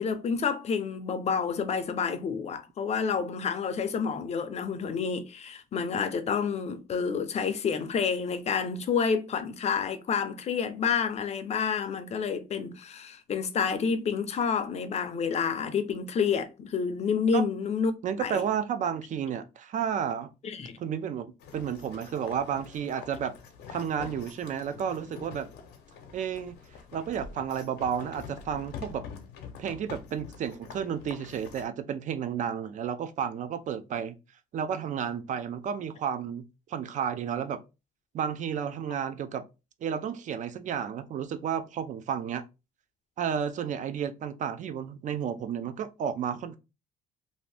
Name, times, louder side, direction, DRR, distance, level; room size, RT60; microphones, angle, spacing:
voice 1, 0.0-18.4 20.4-20.8, left 6 dB, 40° left, 0.5 m, -29 dB
voice 2, 18.0-20.3 20.8-23.3 23.7-25.5 26.1-26.6 26.9-29.0 29.6-34.2 34.5-37.6 38.1-39.4 39.8-42.4 43.2-46.6, right 8 dB, 45° right, 0.5 m, -32 dB
sound 1, 21.4-31.7, left 6 dB, 85° left, 0.7 m, -46 dB
2.7 x 2.5 x 3.2 m
cardioid pair, 110°, 17 cm